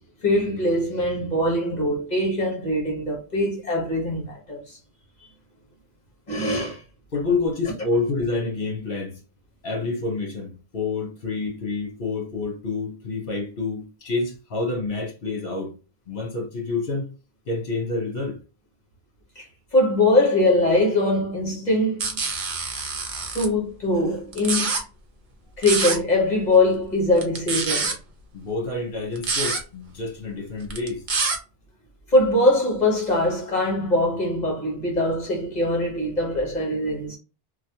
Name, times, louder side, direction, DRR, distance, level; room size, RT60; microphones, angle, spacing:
voice 1, 0.2-4.8 6.3-6.8 19.4-19.5 19.7-22.2 23.3-24.7 25.6-27.9 32.1-37.2, left 1 dB, 45° left, 1.3 m, -22 dB
voice 2, 7.1-9.2 9.6-15.7 16.1-17.1 17.5-18.4 28.3-31.0, left 3 dB, 65° left, 1.2 m, -28 dB
sound 1, 22.0-23.5 24.3-24.8 25.6-26.0 27.2-27.9 29.2-29.6 30.7-31.4, right 4 dB, 55° right, 0.8 m, -25 dB
3.0 x 2.3 x 2.8 m
omnidirectional pair, 1.0 m